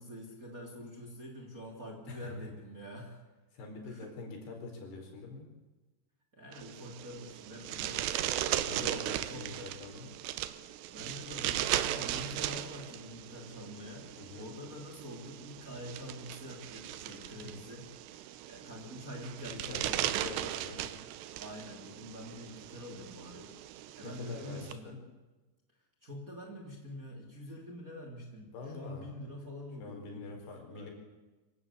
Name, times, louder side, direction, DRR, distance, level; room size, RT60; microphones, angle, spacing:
voice 1, 0.0-3.2 3.8-4.1 6.3-8.9 9.3-9.7 10.9-14.1 14.4-17.9 18.1-20.2 21.4-23.5 24.0-25.0 26.0-30.3 30.7-30.9, equal, 20° right, 1 dB, 3.2 m, -46 dB
voice 2, 3.5-5.5 8.7-10.1 14.2-14.5 17.3-17.5 19.5-20.9 24.0-25.0 28.5-29.1 29.8-30.9, left 3 dB, 70° left, 2 dB, 6.5 m, -45 dB
sound 1, 6.5-24.7, right 12 dB, 80° right, 3.0 m, -38 dB
25.5 x 16.5 x 8.5 m, 1.2 s
omnidirectional pair, 5.0 m